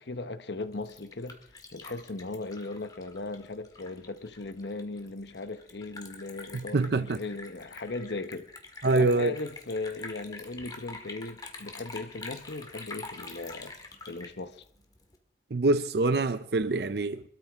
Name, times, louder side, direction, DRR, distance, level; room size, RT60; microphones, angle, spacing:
voice 1, 0.0-1.4 1.7-8.5 8.9-14.6, left 3 dB, 80° left, 1.0 m, -38 dB
Liquid, 0.6-15.2, left 3 dB, 20° left, 1.9 m, -46 dB
voice 2, 6.5-7.2 8.8-9.3 15.5-17.2, right 3 dB, 65° right, 0.6 m, -25 dB
25.0 x 13.5 x 3.6 m
head